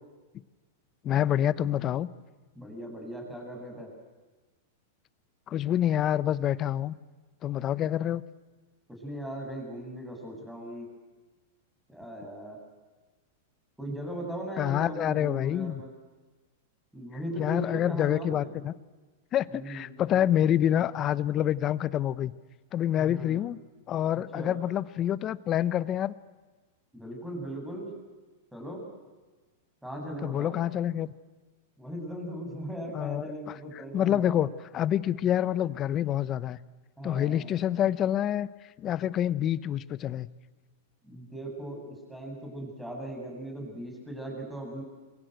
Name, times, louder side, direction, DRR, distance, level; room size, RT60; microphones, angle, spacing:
voice 1, 1.0-2.1 5.5-7.0 7.4-8.2 14.6-15.8 17.4-18.7 19.3-22.3 22.7-23.6 23.9-26.1 30.2-31.1 32.9-36.6 37.0-38.5 38.8-40.3, left 11 dB, 30° left, 17 dB, 0.8 m, -27 dB
voice 2, 2.6-3.9 9.0-10.9 11.9-12.6 13.8-15.9 16.9-18.6 19.5-19.9 23.0-23.4 24.3-24.6 26.9-27.9 28.5-28.8 29.8-30.6 31.8-34.4 37.0-37.5 41.0-44.8, right 1 dB, 5° right, 1 dB, 7.5 m, -38 dB
28.0 x 23.5 x 8.0 m, 1.3 s
hypercardioid pair, 140°, 0 cm